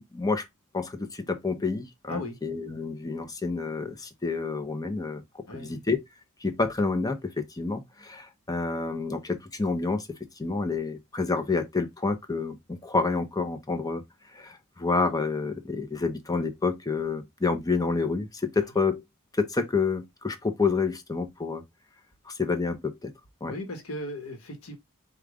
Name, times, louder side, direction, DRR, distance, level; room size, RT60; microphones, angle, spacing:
voice 1, 0.1-0.4 0.7-5.2 5.5-6.0 6.4-10.1 10.4-14.0 14.3-19.0 19.4-21.6 22.3-23.1 23.4-23.5, left 4 dB, 15° left, 0.7 m, -28 dB
voice 2, 5.5-5.8 23.5-24.8, left 1 dB, 75° left, 1.2 m, -37 dB
5.0 x 2.4 x 3.5 m
head